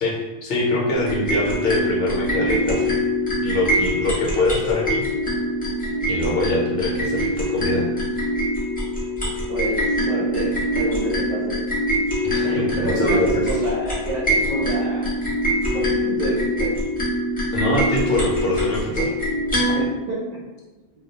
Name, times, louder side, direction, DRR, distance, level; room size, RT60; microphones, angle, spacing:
voice 1, 0.0-2.9 3.4-5.0 6.1-7.9 12.2-13.4 17.5-19.1, left 1 dB, 65° left, -3 dB, 0.9 m, -24 dB
sound 1, 0.9-19.9, equal, 10° left, 0.4 m, -23 dB
voice 2, 7.0-7.3 9.5-11.6 12.4-13.2 13.5-15.0 15.7-16.8 19.7-20.2, right 1 dB, 55° right, -8 dB, 0.5 m, -28 dB
2.2 x 2.1 x 2.8 m, 1.1 s
omnidirectional pair, 1.1 m